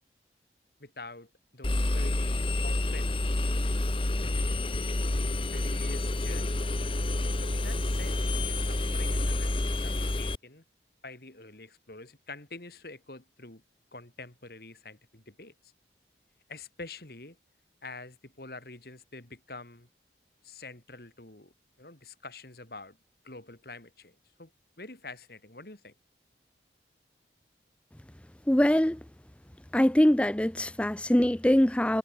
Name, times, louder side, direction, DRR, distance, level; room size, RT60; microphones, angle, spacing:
voice 1, 0.8-3.3 5.5-6.8 7.4-10.6 11.0-13.6 13.9-15.7 16.5-17.4 17.8-19.9 20.4-21.5 21.8-23.0 23.2-24.5 24.8-25.9, left 3 dB, 55° left, 2.6 m, -46 dB
Engine, 1.6-10.4, left 2 dB, 30° left, 1.0 m, -29 dB
voice 2, 28.5-29.0 29.7-32.0, equal, 5° left, 0.5 m, -23 dB
head